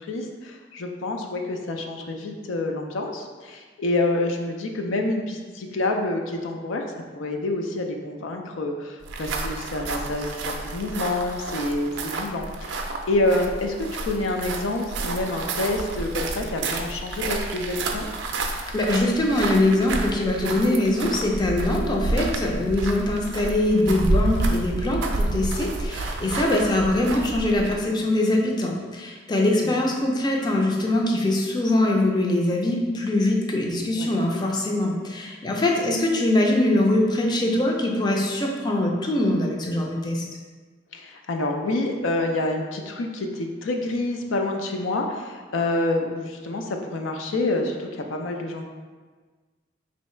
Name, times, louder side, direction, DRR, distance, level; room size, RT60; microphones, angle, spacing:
voice 1, 0.0-6.8 7.2-13.7 14.1-18.1 22.5-22.6 29.6-30.0 34.0-34.1 40.9-48.6, left 2 dB, 85° left, 3 dB, 0.5 m, -27 dB
sound 1, 9.0-27.9, right 2 dB, 65° right, 0.4 m, -30 dB
voice 2, 18.7-40.2, left 1 dB, 20° left, 0 dB, 0.4 m, -23 dB
3.1 x 2.7 x 4.3 m, 1.4 s
head